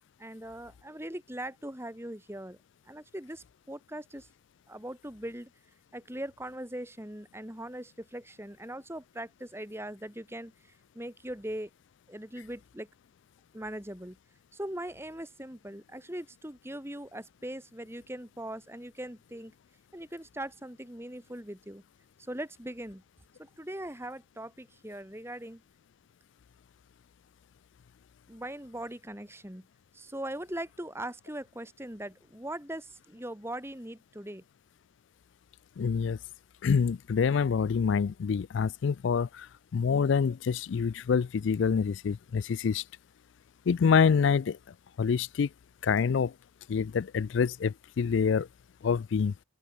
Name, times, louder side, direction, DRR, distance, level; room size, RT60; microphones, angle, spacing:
voice 1, 0.2-2.6 2.9-4.3 4.7-5.5 5.9-10.5 10.9-11.7 12.1-12.9 13.5-14.2 14.5-19.5 19.9-21.8 22.3-23.0 23.4-25.6 28.3-29.6 29.9-34.4, right 1 dB, 10° right, 2.8 m, -40 dB
voice 2, 35.8-36.2 36.6-39.5 39.7-42.8 43.7-44.6 45.0-45.5 45.8-46.3 46.7-48.5 48.8-49.3, left 6 dB, 65° left, 0.4 m, -26 dB
head